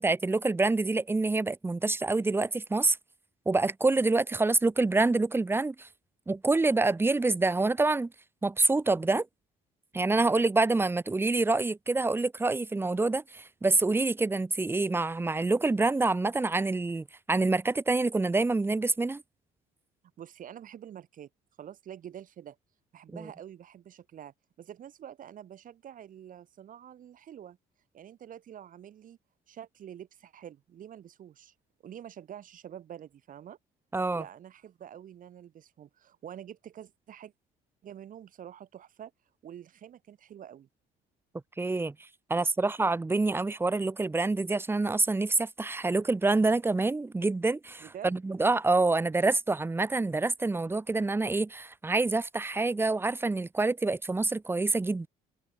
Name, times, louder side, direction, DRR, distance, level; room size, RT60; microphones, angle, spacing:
voice 1, 0.0-3.0 3.5-5.9 6.3-8.1 8.4-9.3 9.9-19.2 33.9-34.2 41.6-41.9 42.3-55.1, right 3 dB, 15° right, 0.9 m, -26 dB
voice 2, 20.2-21.3 21.6-22.6 22.9-27.6 27.9-29.2 29.5-31.5 31.8-33.6 34.1-37.3 37.8-39.1 39.4-40.7 42.4-42.7 47.8-48.2, right 10 dB, 55° right, 2.5 m, -47 dB
cardioid pair, 110°, 17 cm